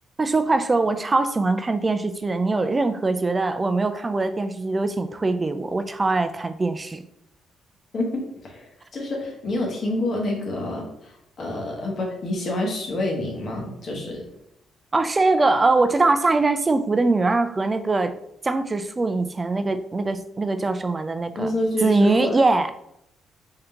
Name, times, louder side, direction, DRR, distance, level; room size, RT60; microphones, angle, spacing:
voice 1, 0.2-7.0 14.9-18.1 18.4-21.5 21.8-22.7, right 3 dB, 25° right, 9 dB, 0.4 m, -22 dB
voice 2, 7.9-14.2 21.4-22.3, left 1 dB, 50° left, 0 dB, 1.2 m, -28 dB
3.7 x 3.0 x 3.4 m, 0.77 s
cardioid pair, 90°, 0 cm